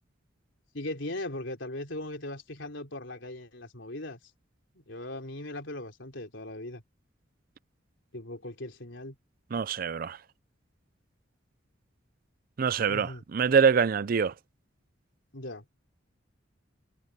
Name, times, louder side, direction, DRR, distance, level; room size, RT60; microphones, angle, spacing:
voice 1, 0.7-4.2 4.9-6.8 8.1-9.2 12.9-13.2 15.3-15.7, left 1 dB, 70° left, 3.7 m, -39 dB
voice 2, 9.5-10.2 12.6-14.3, right 6 dB, 45° right, 0.4 m, -25 dB
head